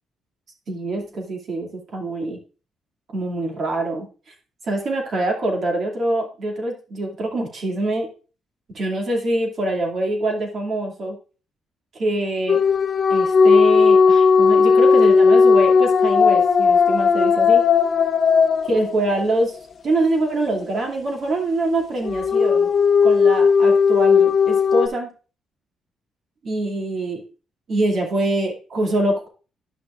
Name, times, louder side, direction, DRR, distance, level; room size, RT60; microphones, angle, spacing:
voice 1, 0.7-2.4 3.1-4.1 4.6-8.1 8.7-11.2 11.9-12.6 13.1-17.7 18.7-19.6 19.8-22.7 23.0-25.1 26.4-27.2 27.7-29.3, right 2 dB, 55° right, 1 dB, 2.5 m, -24 dB
sound 1, 12.5-19.4 22.0-24.9, left 5 dB, 50° left, 0.7 m, -16 dB
11.0 x 6.0 x 2.5 m, 0.35 s
cardioid pair, 90°, 0 cm